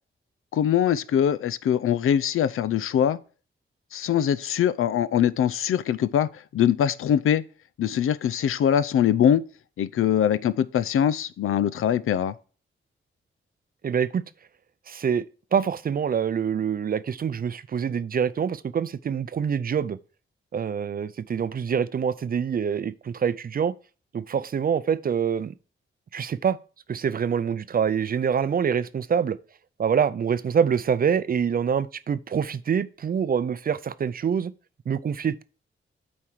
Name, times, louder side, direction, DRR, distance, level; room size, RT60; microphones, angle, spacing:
voice 1, 0.5-3.2 3.9-7.4 7.8-9.4 9.8-12.3, left 9 dB, 85° left, 0.5 m, -22 dB
voice 2, 13.8-14.2 14.9-15.2 15.5-20.0 20.5-23.7 24.1-25.5 26.1-26.6 26.9-29.4 29.8-34.5 34.9-35.4, right 7 dB, 45° right, 0.5 m, -25 dB
8.6 x 4.5 x 4.6 m
cardioid pair, 100°, 21 cm